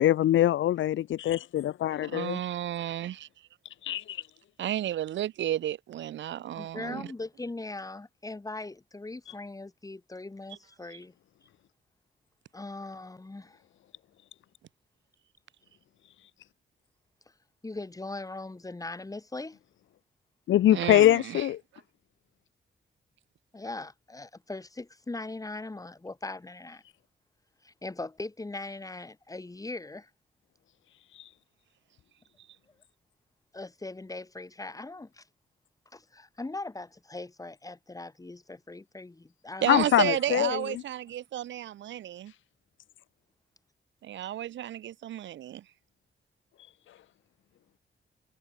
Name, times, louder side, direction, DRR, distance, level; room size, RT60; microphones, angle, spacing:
voice 1, 0.0-2.4 3.8-4.2 9.3-9.4 20.5-21.6 31.1-31.3 39.7-40.8, left 12 dB, 90° left, 0.6 m, -24 dB
voice 2, 2.1-3.3 4.6-7.1 10.9-11.0 20.7-21.4 39.6-42.3 44.0-45.6, right 12 dB, 75° right, 0.5 m, -32 dB
voice 3, 6.6-11.1 12.5-13.6 17.6-19.6 23.5-26.8 27.6-30.1 33.5-35.2 35.9-39.9 40.4-40.5, left 2 dB, 15° left, 3.2 m, -40 dB
wide cardioid pair, 130°, 19 cm